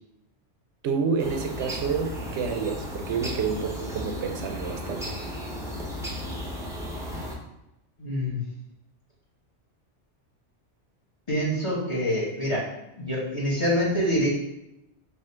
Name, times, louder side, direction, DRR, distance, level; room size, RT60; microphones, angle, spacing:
voice 1, 0.8-5.2, right 5 dB, 75° right, 5 dB, 0.9 m, -29 dB
sound 1, 1.2-7.3, equal, 5° right, 0.5 m, -35 dB
voice 2, 8.0-8.4 11.3-12.6 12.9-14.3, equal, 30° left, -5 dB, 1.0 m, -26 dB
3.5 x 2.7 x 4.3 m, 0.89 s
omnidirectional pair, 1.2 m